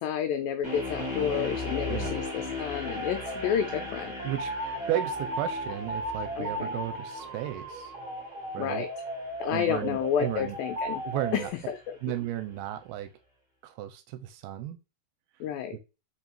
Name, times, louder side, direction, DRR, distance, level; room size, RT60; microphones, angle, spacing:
voice 1, 0.0-4.1 6.4-6.7 8.6-8.9 9.4-11.0 11.3-11.8 15.4-15.8, left 8 dB, 90° left, 7 dB, 2.0 m, -30 dB
sound 1, 0.6-11.7, left 2 dB, 10° right, 1.1 m, -39 dB
sound 2, 2.8-11.5, right 1 dB, 55° right, 1.4 m, -36 dB
voice 2, 4.9-7.9 8.5-8.9 9.5-10.6 11.0-11.5 12.0-13.1 13.6-14.8 15.7-15.8, right 13 dB, 80° right, 10 dB, 2.4 m, -34 dB
5.2 x 4.1 x 4.4 m, 0.28 s
omnidirectional pair, 4.7 m